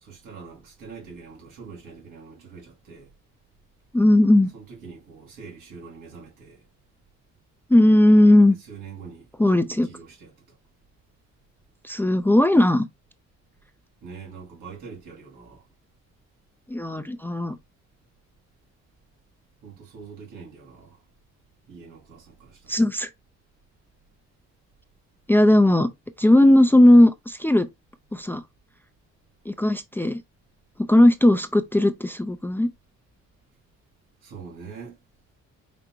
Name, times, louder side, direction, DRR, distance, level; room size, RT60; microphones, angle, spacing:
voice 1, 0.0-3.1 4.5-6.6 8.7-10.3 14.0-15.6 19.6-21.0 21.7-22.8 34.2-35.0, right 5 dB, 85° right, 2.5 m, -43 dB
voice 2, 3.9-4.5 7.7-8.6 9.4-9.9 11.8-12.9 16.7-17.6 22.7-23.1 25.3-25.9 26.2-27.7 28.1-28.4 29.5-30.2 30.9-32.7, left 1 dB, 5° left, 0.4 m, -17 dB
5.1 x 2.1 x 4.6 m
cardioid pair, 90°, 30 cm